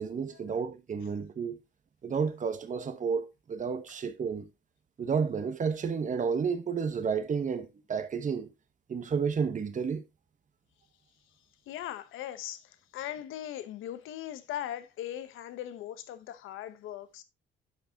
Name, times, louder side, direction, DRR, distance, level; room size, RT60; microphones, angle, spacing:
voice 1, 0.0-1.6 2.0-4.5 5.0-8.5 8.9-10.0, right 6 dB, 40° right, 1.0 m, -31 dB
voice 2, 11.7-17.2, left 12 dB, 90° left, 0.9 m, -39 dB
10.5 x 6.1 x 2.7 m
cardioid pair, 90°, 20 cm